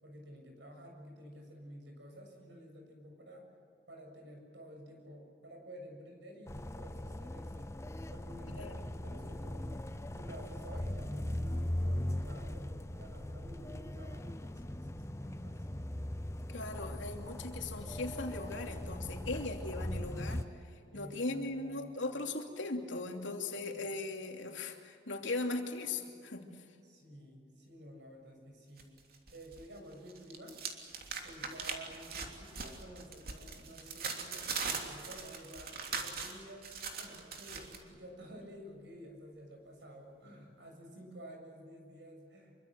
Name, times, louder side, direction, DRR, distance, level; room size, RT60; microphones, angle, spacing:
voice 1, 0.0-3.4 3.9-7.8 8.1-9.7 10.1-15.7 20.9-21.9 26.8-28.9 29.3-30.5 31.2-42.6, equal, 70° right, 2 dB, 7.3 m, -51 dB
sound 1, 6.5-20.4, left 1 dB, 15° left, 0.7 m, -39 dB
voice 2, 16.5-26.6, left 2 dB, 85° left, 3 dB, 3.0 m, -39 dB
sound 2, 28.8-29.6 29.9-37.8, right 5 dB, 50° right, 3.1 m, -41 dB
26.5 x 24.0 x 7.8 m, 2.3 s
head